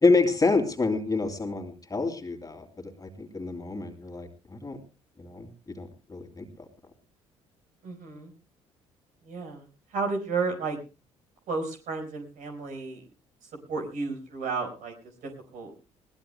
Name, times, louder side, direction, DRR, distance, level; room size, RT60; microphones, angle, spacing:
voice 1, 0.0-4.8 5.2-5.5 5.8-6.5, left 3 dB, 25° left, 5 dB, 2.8 m, -27 dB
voice 2, 7.8-8.3 9.2-9.7 9.9-10.8 11.5-13.0 13.7-14.9 15.2-15.7, right 4 dB, 60° right, 4 dB, 4.7 m, -32 dB
21.5 x 18.5 x 2.2 m, 0.31 s
figure-of-eight pair, 50°, 15 cm